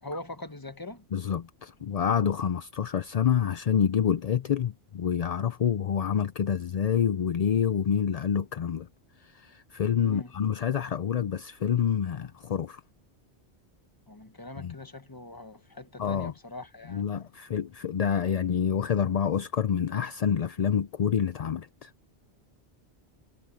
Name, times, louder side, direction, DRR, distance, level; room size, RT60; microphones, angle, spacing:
voice 1, 0.0-1.0 10.0-10.3 14.1-17.1, left 2 dB, 20° left, 1.2 m, -42 dB
voice 2, 1.1-8.9 9.2-12.8 14.6-14.7 16.0-16.3 16.9-21.9, left 8 dB, 50° left, 0.5 m, -27 dB
omnidirectional pair, 1.1 m